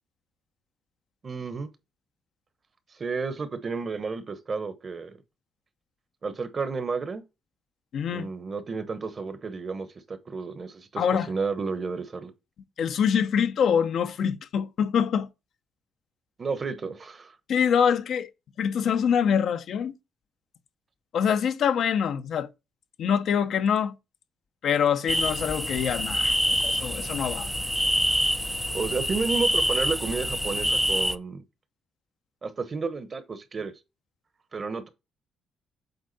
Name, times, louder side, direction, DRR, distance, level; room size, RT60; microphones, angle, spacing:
voice 1, 1.2-1.7 3.0-5.2 6.2-7.2 8.1-12.3 16.4-17.4 28.7-31.4 32.4-33.7 34.5-34.9, right 4 dB, 40° right, 1.0 m, -31 dB
voice 2, 7.9-8.3 11.0-11.3 12.8-15.3 17.5-18.3 18.6-19.9 21.1-22.5 23.0-23.9 24.6-27.5, left 7 dB, 65° left, 0.7 m, -25 dB
sound 1, 25.1-31.2, equal, ahead, 0.4 m, -26 dB
8.0 x 3.7 x 4.1 m
cardioid pair, 90°, 0 cm